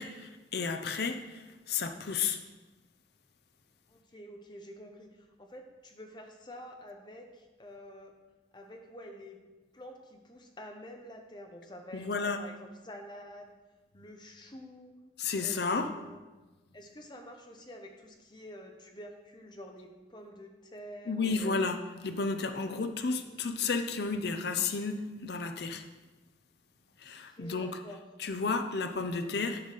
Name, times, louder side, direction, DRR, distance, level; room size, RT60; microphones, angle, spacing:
voice 1, 0.0-2.4 11.9-12.4 15.2-15.9 21.1-21.8 22.0-25.8 27.0-27.8 28.2-29.6, left 4 dB, 65° left, 7 dB, 0.6 m, -32 dB
voice 2, 3.9-8.1 8.5-9.4 9.7-13.5 13.9-15.0 15.4-16.2 16.7-21.6 22.7-22.8 27.3-28.0, equal, 25° left, 3 dB, 1.0 m, -48 dB
10.5 x 4.0 x 6.6 m, 1.2 s
head